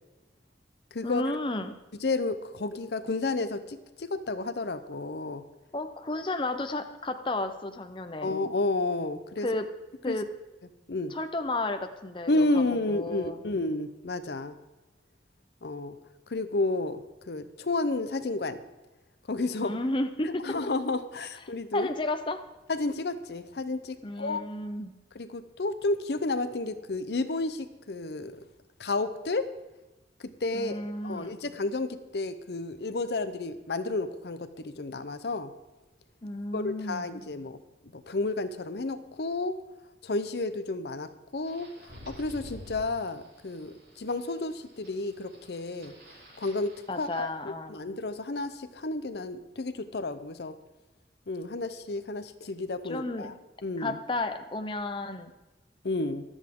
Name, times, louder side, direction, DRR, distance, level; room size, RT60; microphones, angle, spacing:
voice 1, 1.0-1.7 5.7-8.3 9.4-9.6 10.0-10.3 11.1-12.5 12.9-13.4 19.6-20.4 21.7-22.4 24.0-24.9 30.5-31.4 36.2-37.2 46.9-47.9 52.8-53.3 53.8-55.3, left 2 dB, 30° left, 8 dB, 0.7 m, -32 dB
voice 2, 2.0-5.4 8.2-9.5 10.1-10.2 10.9-11.1 12.3-14.5 15.6-16.0 16.3-18.6 19.3-19.8 20.2-21.9 22.7-24.5 25.1-28.4 28.8-29.5 30.2-35.5 36.5-37.6 37.9-39.6 40.0-45.9 46.4-50.6 51.3-53.3 53.6-54.0 55.8-56.2, left 2 dB, 65° left, 11 dB, 0.7 m, -31 dB
sound 1, 41.4-47.2, equal, 70° right, 5.6 m, -50 dB
24.0 x 8.1 x 3.7 m, 1.1 s
head